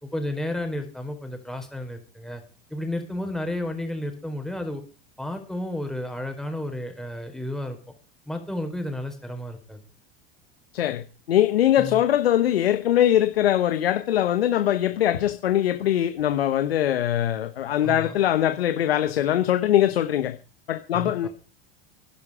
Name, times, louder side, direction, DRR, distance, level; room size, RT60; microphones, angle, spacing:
voice 1, 0.0-2.4 2.7-4.8 5.2-7.8 8.3-9.8 11.8-12.0 17.8-18.2 20.9-21.3, left 1 dB, ahead, 4.4 m, -32 dB
voice 2, 10.7-20.4 20.7-21.3, left 11 dB, 90° left, 1.1 m, -22 dB
15.5 x 11.0 x 4.9 m
hypercardioid pair, 90°, 30 cm